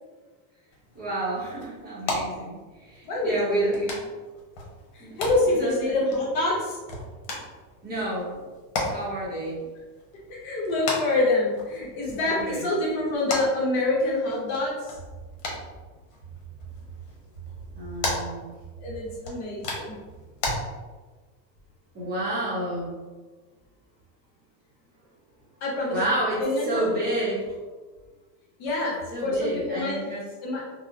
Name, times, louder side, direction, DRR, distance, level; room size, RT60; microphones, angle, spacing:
sound 1, 0.7-20.5, left 2 dB, 80° left, 0.9 m, -37 dB
voice 1, 0.9-4.0 5.0-5.2 5.6-5.9 7.8-8.4 8.8-9.6 12.2-12.7 17.7-18.5 21.9-23.0 25.9-27.5 29.1-30.2, right 1 dB, 20° right, -8 dB, 0.7 m, -30 dB
voice 2, 3.0-3.7 4.9-6.8 10.3-15.0 18.8-20.0 25.6-26.1 26.4-26.9 28.6-30.1 30.4-30.6, left 2 dB, 55° left, -4 dB, 1.0 m, -26 dB
2.7 x 2.0 x 2.5 m, 1.3 s
supercardioid pair, 145°, 47 cm